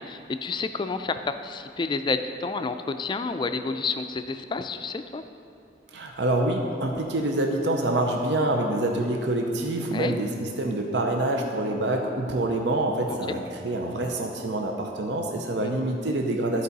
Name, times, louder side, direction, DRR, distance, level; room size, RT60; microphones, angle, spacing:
voice 1, 0.0-5.2 9.9-10.1 13.3-13.4 15.6-15.7, left 4 dB, 25° left, 9 dB, 0.3 m, -30 dB
voice 2, 5.9-16.6, right 1 dB, 75° right, 2 dB, 0.7 m, -26 dB
13.5 x 4.7 x 4.0 m, 2.6 s
head